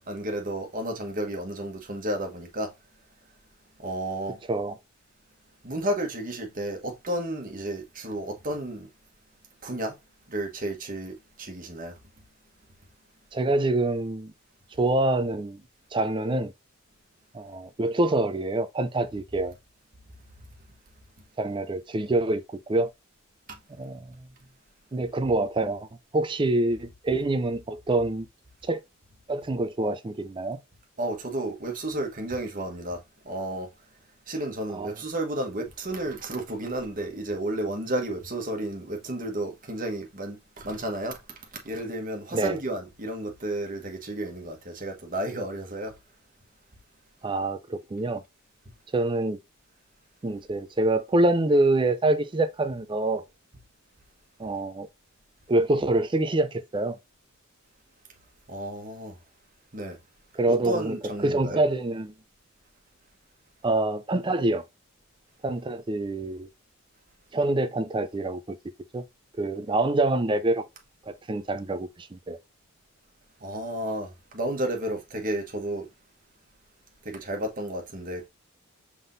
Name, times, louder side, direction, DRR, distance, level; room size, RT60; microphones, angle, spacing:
voice 1, 0.0-2.7 3.8-4.4 5.6-8.9 9.6-9.9 10.3-11.9 31.0-33.7 34.3-45.9 58.5-59.2 59.7-60.0 60.5-61.6 73.4-75.9 77.0-78.3, right 1 dB, 40° right, 1.2 m, -32 dB
voice 2, 13.3-14.3 14.8-15.6 15.9-16.5 17.3-19.5 21.4-22.4 22.7-22.9 23.8-24.1 24.9-25.9 26.1-28.3 28.7-28.8 29.3-30.6 34.7-34.9 42.3-42.6 47.2-48.2 48.9-49.4 50.2-53.2 54.4-54.9 55.5-57.0 60.4-61.0 61.2-62.1 63.6-64.6 65.4-66.5 67.3-68.6 68.9-69.0 69.4-70.6 71.1-72.4, right 2 dB, 20° right, 0.4 m, -26 dB
5.7 x 3.6 x 2.6 m
head